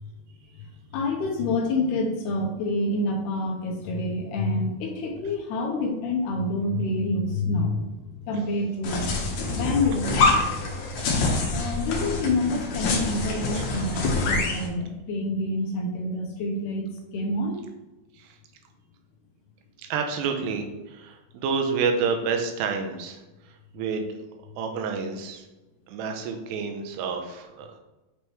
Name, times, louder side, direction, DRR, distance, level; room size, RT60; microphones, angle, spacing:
voice 1, 0.9-7.9 8.3-9.1 9.5-10.3 11.5-16.9 17.1-17.6, left 2 dB, 85° left, 1 dB, 1.8 m, -27 dB
sound 1, 8.8-14.7, left 3 dB, 65° left, 2.0 m, -26 dB
voice 2, 11.0-11.5 13.5-13.6 13.9-14.0 18.1-18.4 19.8-24.1 24.4-25.4 25.9-27.8, right 5 dB, 85° right, 4 dB, 2.9 m, -30 dB
8.6 x 4.9 x 3.1 m, 1.1 s
omnidirectional pair, 4.8 m